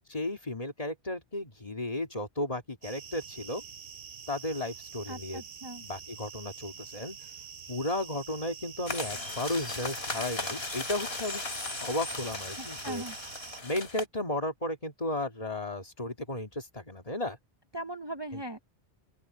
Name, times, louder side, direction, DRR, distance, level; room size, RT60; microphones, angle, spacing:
voice 1, 0.1-3.6 4.3-5.4 5.8-7.2 7.7-11.5 11.8-13.0 13.6-17.4 18.3-18.4, left 1 dB, 35° left, 2.4 m, -34 dB
sound 1, 2.8-13.6, right 7 dB, 60° right, 1.2 m, -46 dB
voice 2, 5.1-5.8 12.5-13.2 17.7-18.6, right 1 dB, 25° right, 0.9 m, -39 dB
sound 2, 8.9-14.1, left 2 dB, 65° left, 3.3 m, -37 dB
open air
omnidirectional pair, 1.1 m